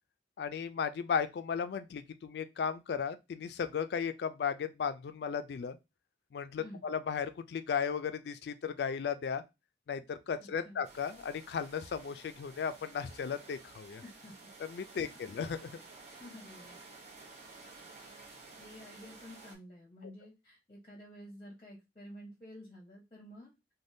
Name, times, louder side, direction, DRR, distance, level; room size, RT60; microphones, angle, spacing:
voice 1, 0.4-5.8 6.3-9.4 9.9-14.0 14.7-15.7, left 6 dB, 70° left, 0.3 m, -35 dB
voice 2, 6.6-6.9 10.4-10.8 14.0-14.5 14.9-15.4 16.2-16.8 18.6-23.5, left 1 dB, 30° left, 0.7 m, -51 dB
sound 1, 10.8-19.5, right 3 dB, 40° right, 0.9 m, -53 dB
3.3 x 2.2 x 2.6 m
head